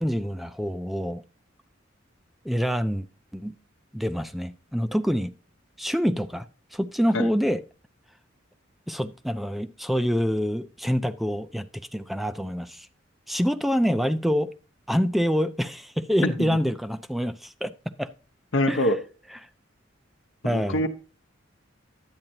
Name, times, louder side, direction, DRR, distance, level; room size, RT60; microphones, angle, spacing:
voice 1, 0.0-1.2 2.4-3.0 3.3-3.5 3.9-5.3 5.8-6.4 6.7-7.6 8.9-11.7 11.9-12.9 13.3-14.5 14.9-17.7 18.0-18.1 18.7-18.8 20.4-20.8, equal, ahead, 0.4 m, -26 dB
voice 2, 16.2-16.6 18.5-19.0 20.4-20.9, left 1 dB, 70° left, 1.0 m, -24 dB
10.5 x 8.7 x 2.8 m
head